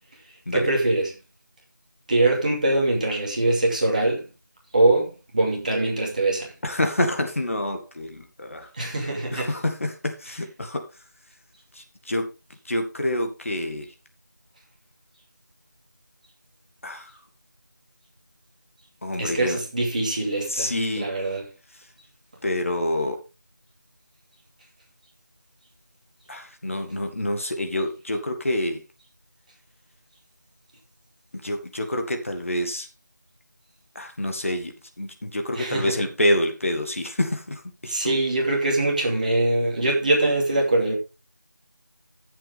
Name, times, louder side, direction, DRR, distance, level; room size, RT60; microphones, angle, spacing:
voice 1, 0.5-1.1 2.1-4.3 4.7-6.5 8.8-9.6 19.2-20.7 21.0-21.5 35.6-35.9 37.9-40.9, right 2 dB, 25° right, 2.6 m, -23 dB
voice 2, 6.6-8.9 9.3-10.9 11.7-12.3 12.7-13.9 16.8-17.1 19.0-19.6 20.5-21.1 22.4-23.2 26.3-28.8 31.4-32.9 34.0-38.2, left 1 dB, 45° left, 1.8 m, -27 dB
14.5 x 7.6 x 3.5 m
figure-of-eight pair, 175°, 10 cm